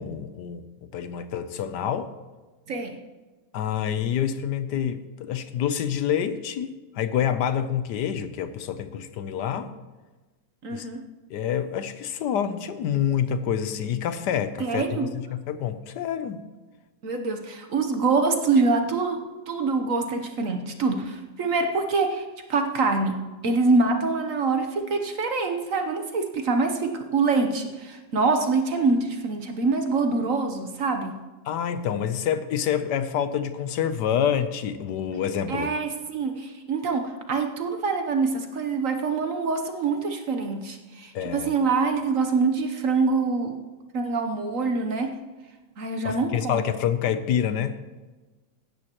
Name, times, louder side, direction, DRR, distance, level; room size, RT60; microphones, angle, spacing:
voice 1, 0.0-2.1 3.5-9.7 10.7-10.9 11.3-16.4 31.5-35.7 41.1-41.5 46.0-47.8, left 9 dB, 75° left, 11 dB, 1.2 m, -27 dB
voice 2, 10.6-11.0 14.6-15.1 17.0-19.2 19.5-22.2 22.5-31.2 35.5-43.5 43.9-45.1 45.8-46.7, right 4 dB, 55° right, 5 dB, 1.2 m, -25 dB
16.0 x 12.5 x 3.0 m, 1.2 s
omnidirectional pair, 1.9 m